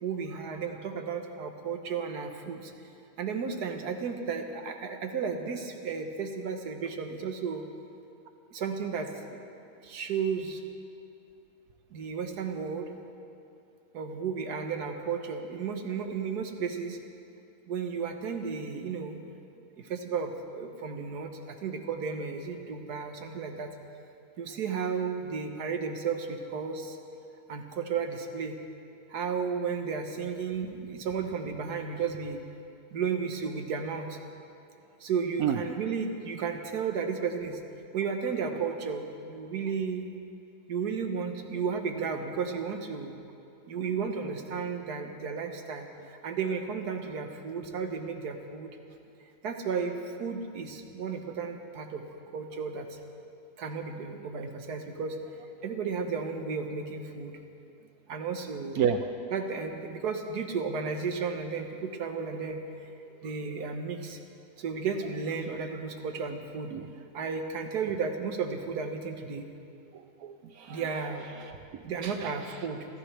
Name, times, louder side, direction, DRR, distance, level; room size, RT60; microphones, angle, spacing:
voice 1, 0.0-2.7 3.2-7.6 8.5-9.5 9.8-10.6 11.9-12.9 13.9-17.0 17.7-19.2 19.8-23.7 24.4-27.0 27.5-28.6 29.1-32.4 32.9-34.2 35.0-37.6 37.9-40.0 40.7-43.1 43.7-48.7 49.4-52.0 52.3-53.0 53.6-55.2 55.6-57.4 58.1-58.8 59.3-64.2 64.6-66.7 67.1-69.5 70.7-71.3 71.8-72.9, right 5 dB, 90° right, 4 dB, 1.7 m, -33 dB
voice 2, 58.7-59.1 66.7-66.9 69.9-70.9 71.4-72.6, right 8 dB, 75° right, 6 dB, 1.1 m, -32 dB
27.0 x 14.5 x 3.4 m, 2.5 s
omnidirectional pair, 1.6 m